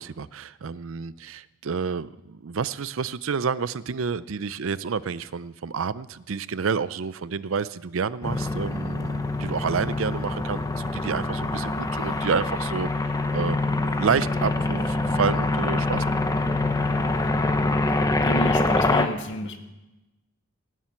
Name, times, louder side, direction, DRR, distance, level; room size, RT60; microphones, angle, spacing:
voice 1, 0.0-16.0, right 6 dB, 65° right, 16 dB, 0.5 m, -29 dB
sound 1, 8.2-19.1, left 2 dB, 15° left, 0.8 m, -25 dB
voice 2, 18.2-19.6, left 1 dB, 60° left, 6 dB, 1.6 m, -30 dB
18.0 x 7.4 x 8.9 m, 1.0 s
head